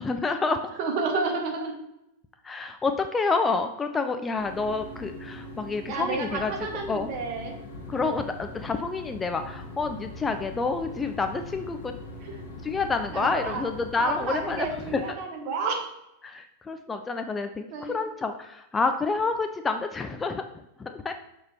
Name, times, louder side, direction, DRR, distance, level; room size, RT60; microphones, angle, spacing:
voice 1, 0.0-0.7 2.4-6.5 6.9-7.1 7.9-11.9 12.6-15.0 16.2-21.1, left 4 dB, 15° left, 7 dB, 0.4 m, -28 dB
voice 2, 0.8-1.8 5.8-7.5 12.2-12.3 13.1-13.7 14.0-15.9 17.7-18.0, right 4 dB, 45° right, 3 dB, 1.3 m, -30 dB
sound 1, 4.4-15.1, left 2 dB, 55° left, 1.2 m, -41 dB
6.6 x 3.6 x 4.3 m, 0.85 s
figure-of-eight pair, 90°, 0 cm